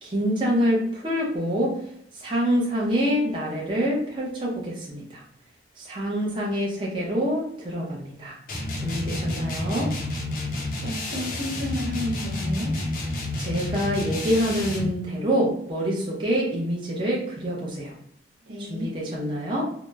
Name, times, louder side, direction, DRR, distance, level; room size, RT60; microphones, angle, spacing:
voice 1, 0.0-1.8 2.1-5.2 5.8-8.4 8.8-9.9 13.4-17.9 18.7-19.6, equal, 25° right, -4 dB, 0.5 m, -26 dB
sound 1, 8.5-15.0, left 1 dB, 50° left, 0.5 m, -30 dB
voice 2, 10.8-12.8 18.5-18.9, left 1 dB, 85° right, -1 dB, 0.7 m, -31 dB
2.7 x 2.0 x 2.2 m, 0.70 s
head